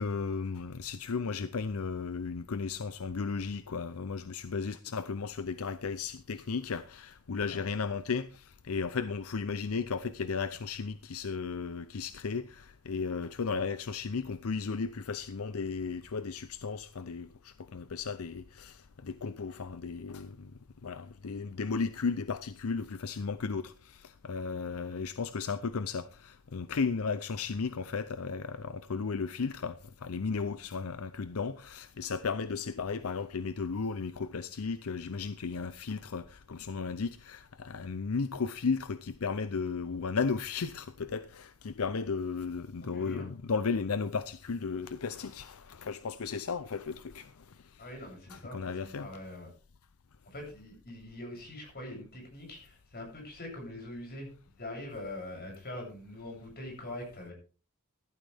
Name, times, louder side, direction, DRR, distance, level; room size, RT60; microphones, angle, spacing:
voice 1, 0.0-20.5 20.8-47.8 48.3-49.1, left 5 dB, 75° left, 0.6 m, -35 dB
voice 2, 42.8-43.3 47.8-49.5 50.2-54.3 54.6-57.3, left 1 dB, 45° left, 7.9 m, -43 dB
15.5 x 12.5 x 3.5 m
head